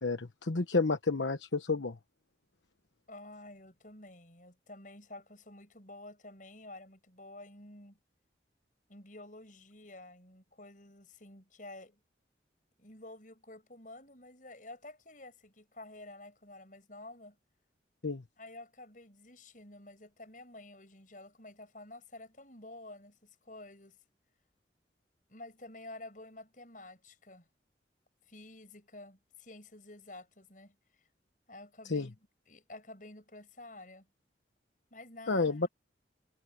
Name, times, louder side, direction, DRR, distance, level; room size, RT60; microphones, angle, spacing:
voice 1, 0.0-2.0 18.0-18.2 31.9-32.1 35.3-35.7, left 3 dB, 80° left, 1.2 m, -30 dB
voice 2, 3.1-8.0 8.9-12.0 12.8-17.4 18.4-24.0 25.3-27.5 28.3-30.8 31.5-32.1 32.5-34.1 34.9-35.7, left 2 dB, 45° left, 7.7 m, -50 dB
head